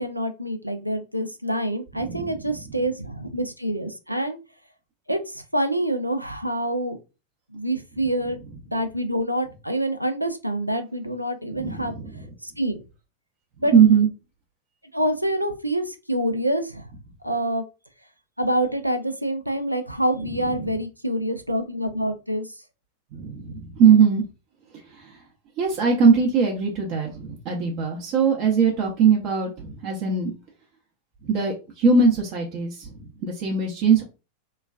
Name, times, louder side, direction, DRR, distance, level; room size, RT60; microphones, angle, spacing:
voice 1, 0.0-4.4 5.1-7.0 7.5-8.4 8.7-11.9 12.4-12.8 13.6-13.7 14.9-16.9 17.2-17.6 18.4-22.5, right 1 dB, 90° right, 8 dB, 0.4 m, -26 dB
voice 2, 2.0-2.3 11.5-12.3 13.7-14.1 20.6-20.7 23.1-24.2 24.7-25.2 25.6-30.3 31.2-32.9 33.2-34.0, right 6 dB, 40° right, 0 dB, 0.7 m, -20 dB
3.1 x 2.2 x 2.4 m, 0.29 s
figure-of-eight pair, 90°, 0 cm